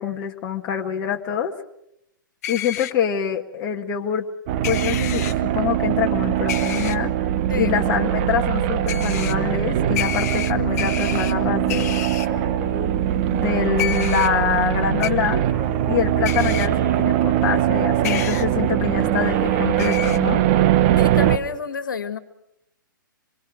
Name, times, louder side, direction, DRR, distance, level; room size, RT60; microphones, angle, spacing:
voice 1, 0.0-1.5 2.5-4.3 4.6-7.1 7.5-12.0 13.3-15.4 15.9-20.4, left 8 dB, 30° left, 3 dB, 1.6 m, -25 dB
sound 1, 2.4-2.9 4.6-5.3 6.5-7.0 8.9-9.3 10.0-11.3 11.7-12.3 13.8-14.3 15.0-15.1 16.3-16.7 18.0-18.5 19.8-20.2, left 11 dB, 45° left, 1.1 m, -29 dB
sound 2, 4.5-21.4, right 12 dB, 35° right, 1.1 m, -21 dB
Male speech man speaking, 12.2-14.5 15.5-17.3 18.2-20.2, right 1 dB, 15° right, 3.6 m, -37 dB
voice 2, 21.0-22.2, left 5 dB, 70° left, 11 dB, 1.9 m, -29 dB
25.5 x 23.0 x 6.3 m, 0.79 s
figure-of-eight pair, 120°, 11 cm